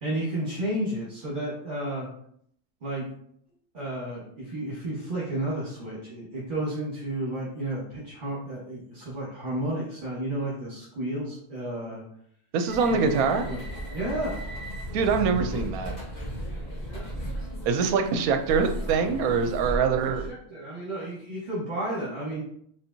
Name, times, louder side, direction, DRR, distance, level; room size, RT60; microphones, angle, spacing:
voice 1, 0.0-2.1 2.8-3.0 3.7-12.0 12.9-13.6 13.9-14.4 16.8-17.1 19.7-19.9 20.3-22.4, right 1 dB, 35° right, -8 dB, 1.4 m, -32 dB
voice 2, 12.5-13.4 14.9-15.9 17.6-20.3, right 5 dB, 75° right, 6 dB, 1.0 m, -24 dB
sound 1, 12.7-20.3, equal, 30° left, 1.3 m, -35 dB
4.3 x 3.6 x 2.7 m, 0.67 s
omnidirectional pair, 1.6 m